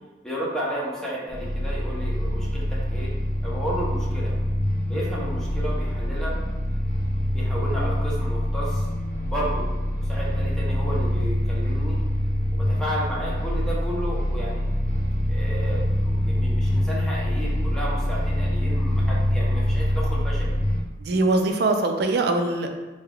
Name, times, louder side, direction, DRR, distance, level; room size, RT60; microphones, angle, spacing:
voice 1, 0.2-4.4 4.9-6.4 7.3-8.9 9.3-9.7 9.9-12.0 12.5-14.6 15.3-20.5, equal, 5° left, -6 dB, 0.7 m, -33 dB
sound 1, 1.3-20.8, left 1 dB, 45° left, 0.5 m, -25 dB
voice 2, 21.0-22.7, right 2 dB, 60° right, 5 dB, 0.4 m, -22 dB
3.6 x 3.2 x 2.3 m, 1.2 s
head